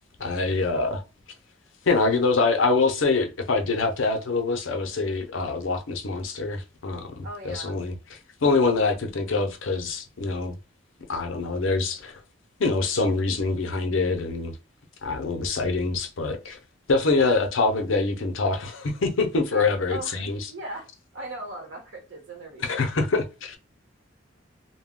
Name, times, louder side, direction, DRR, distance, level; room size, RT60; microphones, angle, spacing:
voice 1, 0.2-1.0 1.9-7.2 7.4-7.9 8.4-10.5 11.1-12.2 12.6-14.6 15.0-16.6 16.9-20.5 22.6-23.6, left 3 dB, 75° left, 0.6 m, -25 dB
voice 2, 7.2-7.8 17.2-17.5 19.4-22.9, right 2 dB, 65° right, 1.0 m, -39 dB
2.2 x 2.2 x 3.5 m
head